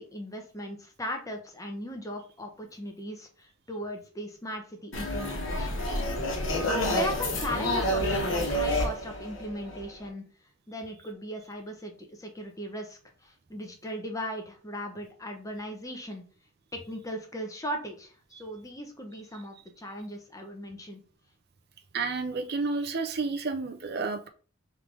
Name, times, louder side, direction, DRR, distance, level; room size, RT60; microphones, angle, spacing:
voice 1, 0.0-5.8 6.5-10.2 10.7-16.2 16.7-21.0, equal, 15° left, 3 dB, 0.8 m, -38 dB
sound 1, 4.9-10.1, left 1 dB, 60° left, 1.2 m, -29 dB
voice 2, 21.9-24.3, right 4 dB, 50° right, 6 dB, 0.5 m, -30 dB
3.8 x 3.2 x 3.3 m, 0.41 s
head